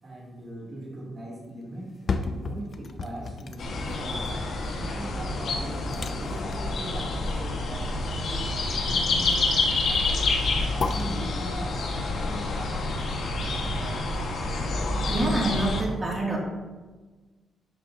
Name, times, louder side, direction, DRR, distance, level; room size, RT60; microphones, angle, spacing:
voice 1, 0.0-4.2 4.8-9.5 9.8-13.3, right 1 dB, 35° right, -6 dB, 2.9 m, -40 dB
sound 1, 1.8-13.8 14.3-14.4, left 4 dB, 40° left, 0.6 m, -37 dB
sound 2, 3.6-15.8, left 3 dB, 65° left, 1.7 m, -28 dB
voice 2, 15.1-16.4, right 2 dB, 20° right, -3 dB, 2.6 m, -26 dB
12.0 x 7.7 x 2.9 m, 1.3 s
cardioid pair, 140°, 0 cm